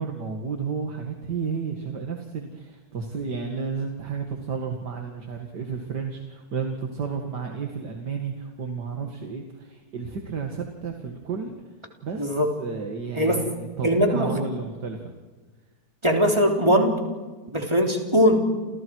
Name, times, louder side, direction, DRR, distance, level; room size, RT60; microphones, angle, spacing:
voice 1, 0.0-11.5 12.0-15.0, right 5 dB, 80° right, 2 dB, 2.7 m, -32 dB
voice 2, 12.2-12.5 13.1-13.4 13.8-14.4 16.0-17.0 17.5-18.4, equal, 15° right, 1 dB, 3.6 m, -20 dB
30.0 x 28.5 x 4.8 m, 1.3 s
omnidirectional pair, 1.8 m